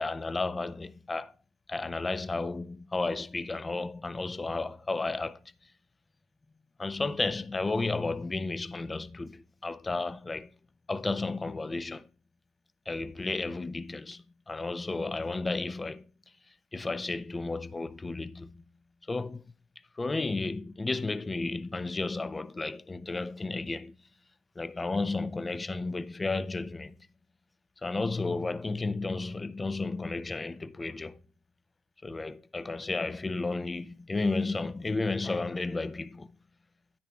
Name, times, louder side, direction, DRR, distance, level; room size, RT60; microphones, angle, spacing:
voice 1, 0.0-1.3 1.7-5.4 6.8-10.5 10.9-12.1 12.9-16.0 16.7-18.6 19.1-19.4 20.0-23.9 24.6-27.0 27.8-31.2 32.0-36.4, left 3 dB, 25° left, 0.5 m, -33 dB
10.0 x 9.5 x 2.4 m
supercardioid pair, 70°, 0 cm